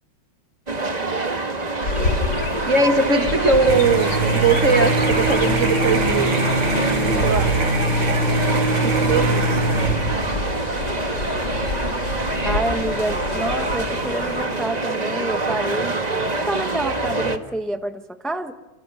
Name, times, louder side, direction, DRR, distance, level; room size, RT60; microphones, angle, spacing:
sound 1, 0.7-17.4, right 2 dB, 20° right, 1.5 m, -25 dB
Chirp tweet, 1.8-14.5, left 3 dB, 65° left, 2.9 m, -29 dB
voice 1, 2.7-6.4 7.2-7.5 8.8-9.6, right 4 dB, 40° right, 7 dB, 2.0 m, -20 dB
sound 2, 3.7-10.4, right 2 dB, 85° right, 4.7 m, -22 dB
voice 2, 12.4-16.0 16.5-18.5, right 1 dB, ahead, 7 dB, 0.7 m, -28 dB
29.0 x 28.0 x 5.6 m, 1.1 s
omnidirectional pair, 2.2 m